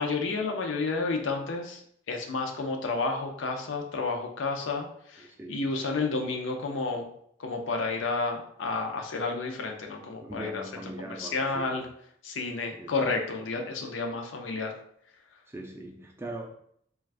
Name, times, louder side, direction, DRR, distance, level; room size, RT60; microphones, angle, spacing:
voice 1, 0.0-7.1 7.4-10.6 11.1-11.8 12.2-14.7, left 3 dB, 75° left, 0.5 m, -31 dB
voice 2, 5.2-5.6 9.9-11.9 12.8-12.9 15.5-16.5, right 1 dB, 10° right, 0.3 m, -41 dB
2.4 x 2.3 x 3.3 m
head